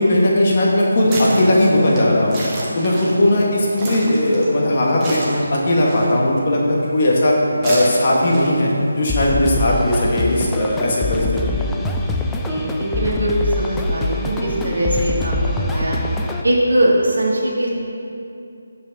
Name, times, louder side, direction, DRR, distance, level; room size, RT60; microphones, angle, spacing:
voice 1, 0.0-2.4 2.7-5.2 5.5-7.3 7.6-8.7 9.0-11.7, left 1 dB, 40° left, -3 dB, 1.5 m, -17 dB
sound 1, 0.7-10.4, right 1 dB, 20° right, 1.1 m, -32 dB
sound 2, 9.1-16.4, left 2 dB, 5° left, 0.4 m, -24 dB
voice 2, 12.4-16.0 16.4-17.7, right 1 dB, 65° right, -4 dB, 1.7 m, -20 dB
7.3 x 5.1 x 5.4 m, 2.6 s
figure-of-eight pair, 155°, 0 cm